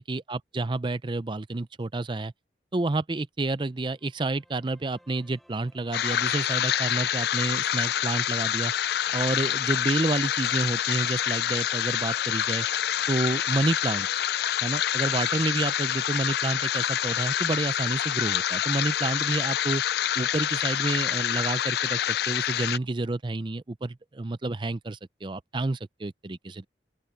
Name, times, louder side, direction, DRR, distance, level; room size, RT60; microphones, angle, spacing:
voice 1, 0.0-2.3 2.7-8.7 9.1-12.7 13.1-14.1 14.6-19.8 20.2-26.7, right 2 dB, 25° right, 0.5 m, -29 dB
sound 1, 3.8-14.2, equal, ahead, 7.2 m, -60 dB
sound 2, 5.9-22.8, left 11 dB, 60° left, 0.3 m, -27 dB
open air
head